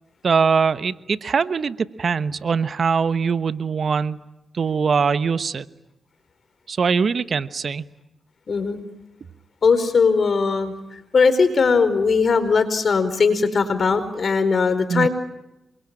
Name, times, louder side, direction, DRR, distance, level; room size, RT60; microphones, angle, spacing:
voice 1, 0.2-4.3 4.6-5.6 6.7-7.8 14.9-15.1, right 5 dB, 60° right, 14 dB, 1.1 m, -22 dB
voice 2, 8.5-8.8 9.6-10.7 11.1-15.1, left 5 dB, 60° left, 11 dB, 4.7 m, -19 dB
27.5 x 23.0 x 8.9 m, 0.92 s
supercardioid pair, 45°, 0 cm